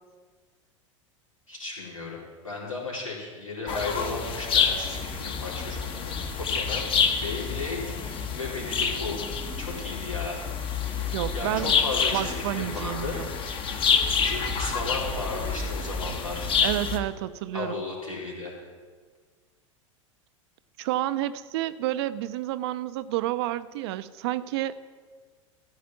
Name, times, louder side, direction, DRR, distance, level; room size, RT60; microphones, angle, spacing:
voice 1, 1.5-9.2 9.6-10.4 11.3-13.2 14.2-16.5 17.5-18.5, left 3 dB, 90° left, -5 dB, 4.2 m, -35 dB
sound 1, 3.7-17.0, left 6 dB, 30° left, 1.3 m, -28 dB
voice 2, 11.1-11.7 12.1-13.3 16.6-17.8 20.8-24.8, right 14 dB, 50° right, 14 dB, 0.6 m, -30 dB
14.5 x 5.1 x 9.0 m, 1.5 s
figure-of-eight pair, 90°, 17 cm